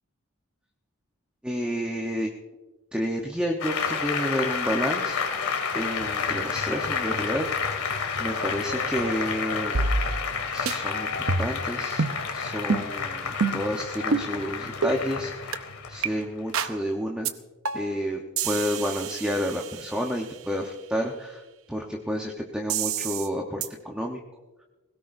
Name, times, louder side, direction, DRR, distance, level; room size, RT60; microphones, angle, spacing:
voice 1, 1.4-2.3 2.9-5.2 5.7-9.8 10.5-12.0 12.3-15.6 15.9-17.3 17.7-24.2 24.6-24.7, equal, 5° right, 0 dB, 1.0 m, -30 dB
Applause, 3.6-16.6, left 5 dB, 85° left, 2.0 m, -30 dB
sound 1, 9.7-10.4 10.7-10.8 11.3-11.6 12.0-12.2 12.7-12.9 13.4-13.7 14.1-14.3 14.8-15.0 15.5-15.6 16.0-16.1 16.5-16.8 17.2-17.3 17.6-18.0 18.4-20.2 22.7-23.3 23.6-23.7, right 4 dB, 65° right, 0.8 m, -27 dB
20.5 x 17.5 x 2.6 m, 1.2 s
head